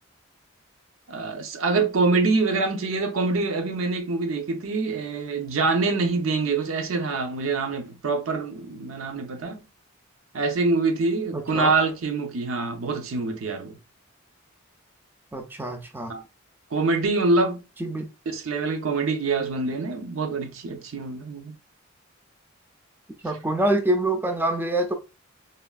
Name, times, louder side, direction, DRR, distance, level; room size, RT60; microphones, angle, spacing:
voice 1, 1.1-9.6 10.3-13.8 16.1-16.2 16.7-17.6 18.3-21.5, right 3 dB, 80° right, 0.5 m, -25 dB
voice 2, 11.3-11.7 15.3-16.1 17.8-18.1 23.2-24.9, right 1 dB, 10° right, 0.3 m, -25 dB
3.3 x 2.3 x 2.2 m
head